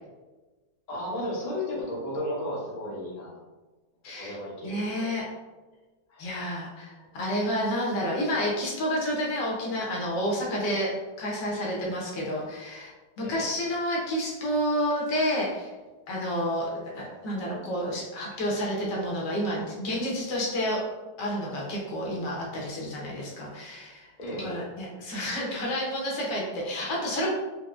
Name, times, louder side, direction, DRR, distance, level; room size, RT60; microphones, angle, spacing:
voice 1, 0.9-3.3 4.1-5.1 6.1-6.3 13.2-13.5 24.2-24.6, left 1 dB, 40° left, -6 dB, 0.6 m, -34 dB
voice 2, 4.0-5.2 6.2-12.9 13.2-15.7 16.1-20.8 21.2-24.1 24.4-27.3, equal, 75° left, -3 dB, 1.4 m, -30 dB
4.5 x 2.0 x 2.4 m, 1.2 s
omnidirectional pair, 1.9 m